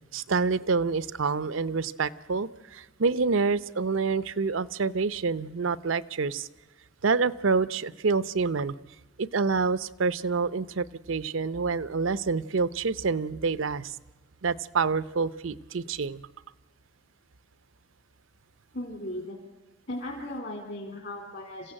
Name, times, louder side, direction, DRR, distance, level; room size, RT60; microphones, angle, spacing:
voice 1, 0.1-6.5 7.0-8.7 9.2-14.0 14.4-16.2, right 4 dB, 90° right, 15 dB, 0.7 m, -27 dB
voice 2, 18.7-19.4 19.9-21.7, left 1 dB, 60° left, 1 dB, 2.9 m, -37 dB
28.0 x 15.0 x 8.8 m, 1.2 s
head